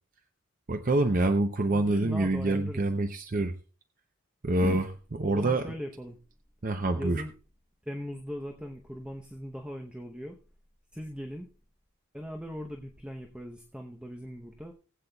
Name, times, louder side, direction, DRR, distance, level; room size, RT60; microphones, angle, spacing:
voice 1, 0.7-3.5 4.4-4.8 5.2-5.6 6.6-7.2, right 2 dB, 40° right, 6 dB, 0.7 m, -26 dB
voice 2, 1.7-2.9 4.6-4.9 5.2-6.2 7.0-7.3 7.8-10.4 10.9-11.5 12.1-14.7, equal, 5° right, 2 dB, 0.8 m, -39 dB
19.5 x 8.4 x 2.3 m, 0.33 s
head